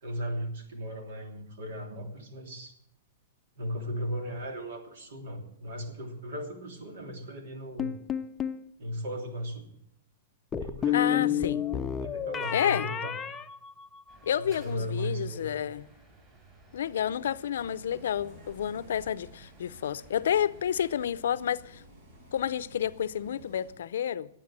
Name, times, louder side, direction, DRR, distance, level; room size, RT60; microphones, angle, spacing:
voice 1, 0.0-2.7 3.6-8.0 8.8-9.7 10.6-13.1 14.4-15.5, equal, 70° right, 3.1 m, -37 dB
sound 1, 7.8-8.6 10.5-14.3, left 9 dB, 15° left, 0.6 m, -30 dB
voice 2, 10.9-11.6 12.5-12.9 14.2-15.8 16.7-21.8 22.3-24.3, left 9 dB, 80° left, 0.6 m, -30 dB
sound 2, 14.1-21.1, right 2 dB, 20° right, 5.9 m, -57 dB
Bus, 17.6-23.7, right 1 dB, 55° right, 6.4 m, -53 dB
12.0 x 9.0 x 7.6 m
hypercardioid pair, 150°, 0 cm